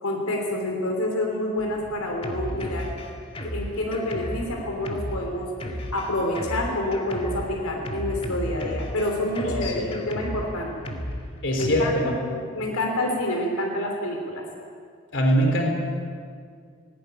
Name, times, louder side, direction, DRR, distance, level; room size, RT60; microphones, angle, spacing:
voice 1, 0.0-2.9 3.4-5.5 5.9-10.7 11.6-11.9 12.3-14.4, left 1 dB, 80° left, 1 dB, 3.4 m, -28 dB
Drum kit, 1.6-11.8, equal, 25° left, 1.9 m, -34 dB
voice 2, 9.4-9.9 11.4-12.1 15.1-15.7, equal, 55° left, 2 dB, 4.0 m, -22 dB
19.0 x 18.0 x 9.9 m, 2.1 s
head